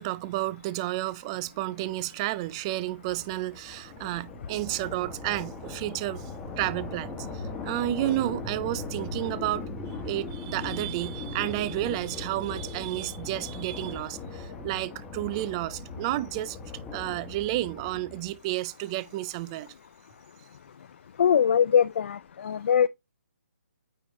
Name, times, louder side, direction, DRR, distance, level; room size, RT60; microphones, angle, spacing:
voice 1, 0.0-6.2 6.6-9.7 10.0-16.6 16.9-19.7, right 16 dB, 25° right, 0.4 m, -31 dB
sound 1, 2.2-18.5, left 3 dB, 10° left, 1.2 m, -39 dB
voice 2, 21.2-22.2 22.4-22.9, left 8 dB, 55° left, 0.4 m, -21 dB
9.0 x 5.1 x 3.0 m
hypercardioid pair, 150°, 8 cm